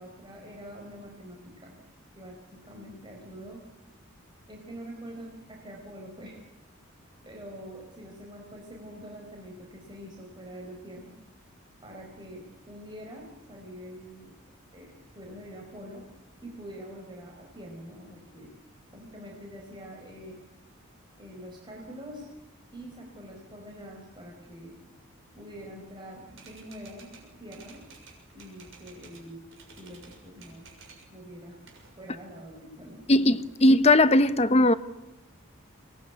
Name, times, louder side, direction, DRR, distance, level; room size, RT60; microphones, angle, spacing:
voice 1, 0.0-1.8 2.2-3.6 4.5-6.4 7.2-11.1 11.8-14.3 14.7-16.0 16.4-18.5 18.9-20.4 21.2-22.3 22.7-24.7 25.3-27.8 28.3-29.4 29.8-30.6 31.1-31.6 32.0-33.4, equal, 20° right, 4.7 m, -45 dB
Typewriter, 26.3-29.3 29.5-31.1 31.4-32.5, right 4 dB, 65° right, 6.9 m, -53 dB
voice 2, 33.1-34.7, left 1 dB, 30° left, 1.0 m, -19 dB
25.0 x 21.0 x 9.5 m
head